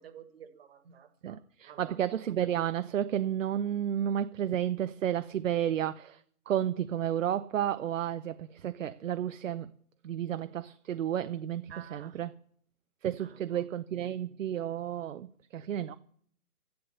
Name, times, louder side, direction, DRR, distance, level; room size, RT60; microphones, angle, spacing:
voice 1, 0.0-1.9 11.7-12.2 13.2-13.7, right 9 dB, 40° right, 1.7 m, -51 dB
voice 2, 1.2-6.2 6.5-9.7 10.0-12.3 13.0-16.0, right 10 dB, 55° right, 0.7 m, -32 dB
12.5 x 11.5 x 6.8 m
hypercardioid pair, 160°, 45 cm